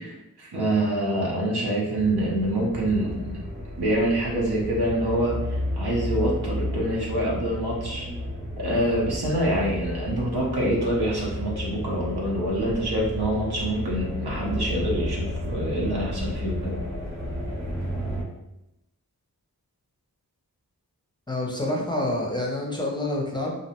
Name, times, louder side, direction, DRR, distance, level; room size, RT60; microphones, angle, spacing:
voice 1, 0.0-3.3 3.8-8.1 8.6-16.8, right 1 dB, 80° right, -3 dB, 0.8 m, -26 dB
sound 1, 2.0-18.2, left 1 dB, 45° right, 0.7 m, -32 dB
voice 2, 21.3-23.5, left 1 dB, 10° left, -2 dB, 0.5 m, -27 dB
2.5 x 2.0 x 2.9 m, 0.91 s
wide cardioid pair, 50°, 38 cm